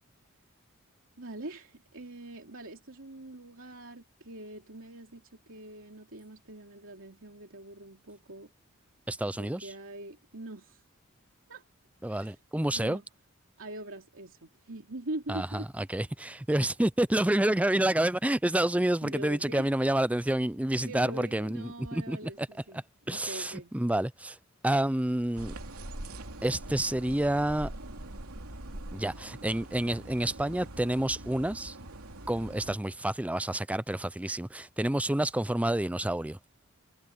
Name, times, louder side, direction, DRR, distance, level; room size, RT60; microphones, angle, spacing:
voice 1, 1.2-8.5 9.4-10.8 11.5-11.6 12.1-12.3 12.7-13.0 13.6-15.7 19.0-19.7 20.8-22.8 23.1-23.7, right 1 dB, 65° right, 3.1 m, -43 dB
voice 2, 9.1-9.7 12.0-13.0 15.3-22.5 23.1-24.4 24.6-25.5 26.4-27.7 28.9-31.8 32.3-36.4, right 1 dB, 5° right, 0.5 m, -29 dB
sound 1, 25.4-32.8, right 1 dB, 85° right, 2.8 m, -43 dB
head